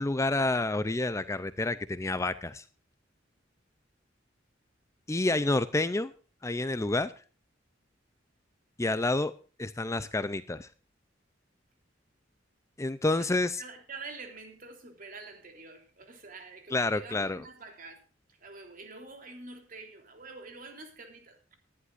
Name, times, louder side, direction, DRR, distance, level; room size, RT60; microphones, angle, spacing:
voice 1, 0.0-2.7 5.1-6.1 6.4-7.1 8.8-9.3 9.6-10.7 12.8-13.6 16.7-17.4, left 2 dB, 15° left, 0.5 m, -29 dB
voice 2, 13.6-18.0 18.4-21.6, right 3 dB, 45° right, 3.4 m, -46 dB
19.5 x 11.0 x 2.6 m
head